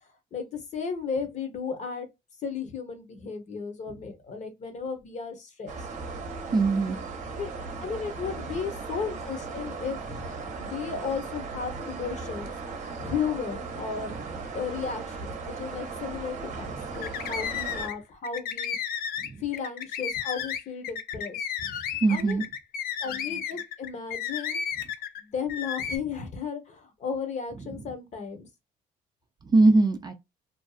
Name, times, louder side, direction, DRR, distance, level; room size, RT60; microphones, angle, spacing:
voice 1, 0.0-2.1 2.4-5.9 7.3-7.5 7.8-12.5 13.0-14.2 14.5-18.8 19.4-21.8 22.1-22.4 23.0-24.6 25.2-28.5, left 6 dB, 45° left, 0.9 m, -34 dB
sound 1, 5.7-17.9, right 4 dB, 45° right, 0.8 m, -37 dB
voice 2, 6.5-7.0 19.2-19.4 22.0-22.4 29.5-30.1, right 3 dB, 25° right, 0.4 m, -21 dB
sound 2, 16.9-18.0 18.2-25.2 25.5-26.0, left 8 dB, 65° left, 0.5 m, -33 dB
2.6 x 2.3 x 2.3 m
cardioid pair, 110°, 17 cm